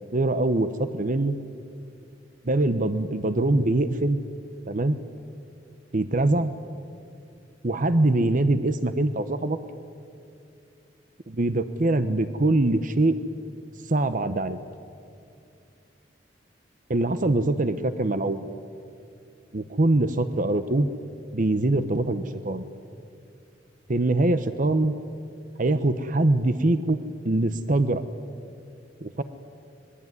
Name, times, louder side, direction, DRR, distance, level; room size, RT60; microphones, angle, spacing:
voice 1, 0.1-1.3 2.4-4.2 4.7-5.0 5.9-6.5 7.6-9.6 11.3-13.1 13.8-14.6 16.9-18.5 19.5-20.9 21.3-22.7 23.9-24.9 25.6-27.0 27.2-28.0 29.0-29.2, right 2 dB, 50° right, 11 dB, 0.9 m, -23 dB
26.0 x 21.0 x 9.6 m, 2.6 s
head